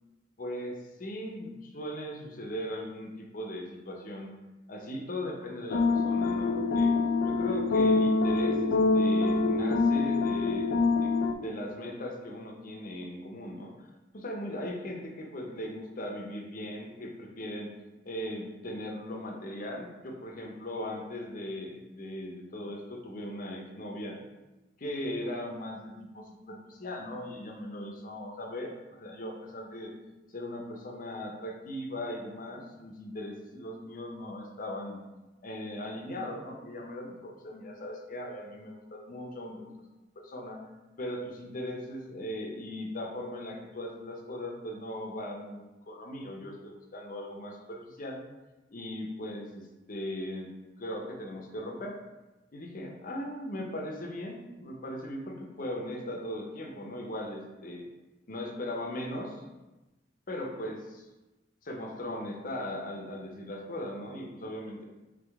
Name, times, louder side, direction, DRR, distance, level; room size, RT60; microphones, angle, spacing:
voice 1, 0.4-4.3 4.7-6.9 7.2-11.1 11.4-17.7 18.1-24.2 24.8-29.9 30.3-35.0 35.4-39.7 40.2-40.6 41.0-48.2 48.7-50.5 50.8-52.0 52.5-57.9 58.3-59.4 60.3-61.0 61.6-64.8, left 1 dB, 50° left, 1 dB, 0.7 m, -38 dB
sound 1, 5.7-11.3, left 3 dB, 85° left, 0.4 m, -25 dB
3.7 x 3.3 x 3.4 m, 1.1 s
head